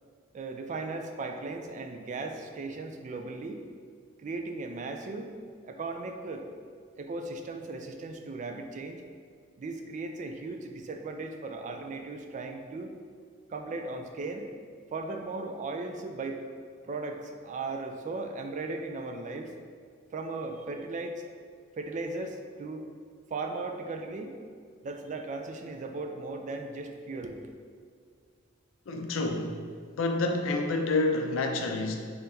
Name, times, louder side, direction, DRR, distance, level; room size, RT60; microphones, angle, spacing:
voice 1, 0.3-3.6 4.2-5.3 5.6-6.5 7.0-9.0 9.6-12.9 13.5-14.5 14.9-16.4 16.8-19.5 20.1-21.2 21.8-22.9 23.3-24.4 24.8-27.4, right 3 dB, 40° right, 5 dB, 0.3 m, -37 dB
voice 2, 28.9-29.6 30.0-32.0, left 2 dB, 70° left, 3 dB, 0.4 m, -28 dB
5.5 x 2.8 x 2.7 m, 2.1 s
head